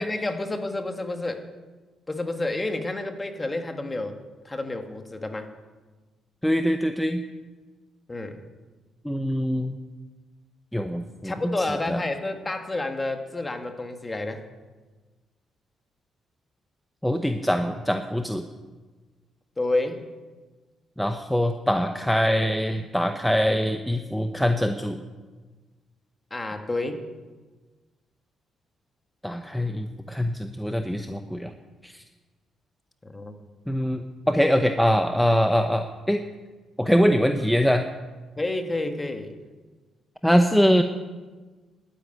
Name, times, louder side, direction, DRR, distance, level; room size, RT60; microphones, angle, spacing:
voice 1, 0.0-1.4 2.1-4.2 4.5-5.5 8.1-8.5 11.2-14.4 19.6-20.0 26.3-27.1 33.0-33.3 38.4-39.4, left 2 dB, 20° left, 6 dB, 1.7 m, -29 dB
voice 2, 6.4-7.2 9.0-9.8 10.7-11.5 11.9-12.0 17.0-18.4 21.0-25.0 29.2-31.5 31.8-31.9 33.7-36.2 36.8-37.9 40.2-40.8, equal, ahead, 6 dB, 0.8 m, -23 dB
12.0 x 9.9 x 9.1 m, 1.3 s
cardioid pair, 90°, 0 cm